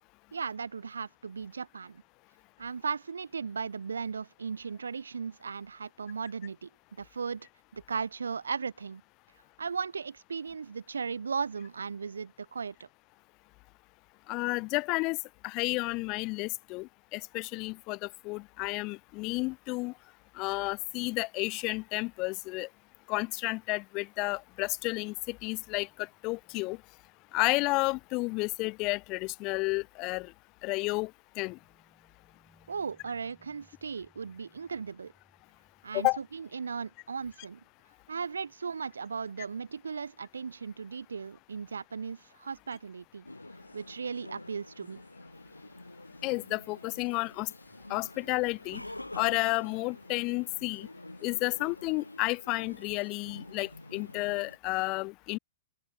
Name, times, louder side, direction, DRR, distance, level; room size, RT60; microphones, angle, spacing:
voice 1, 0.3-2.0 2.6-6.7 7.0-9.0 9.6-12.9 32.7-35.1 35.8-37.6 38.1-43.3 43.7-45.0, right 5 dB, 70° right, 0.6 m, -37 dB
voice 2, 14.3-15.2 15.4-19.9 20.4-22.7 23.1-26.8 27.3-30.3 30.6-31.1 31.4-31.6 35.9-36.2 46.2-47.5 47.9-48.8 49.1-50.9 51.2-55.4, left 25 dB, 35° left, 0.4 m, -31 dB
sound 1, 31.5-38.0, equal, ahead, 6.7 m, -70 dB
sound 2, 43.3-54.6, left 2 dB, 85° left, 2.3 m, -47 dB
open air
figure-of-eight pair, 110°, 0 cm